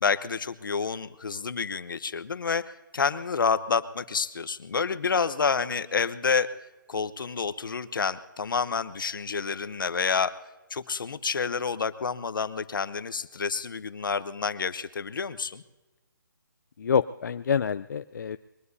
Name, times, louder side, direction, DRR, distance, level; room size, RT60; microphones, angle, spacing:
voice 1, 0.0-6.5 6.9-10.3 10.7-15.6, left 5 dB, 75° left, 14 dB, 0.9 m, -29 dB
voice 2, 16.8-18.4, left 7 dB, 60° left, 11 dB, 0.4 m, -27 dB
22.0 x 21.5 x 2.7 m, 1.1 s
hypercardioid pair, 165°, 11 cm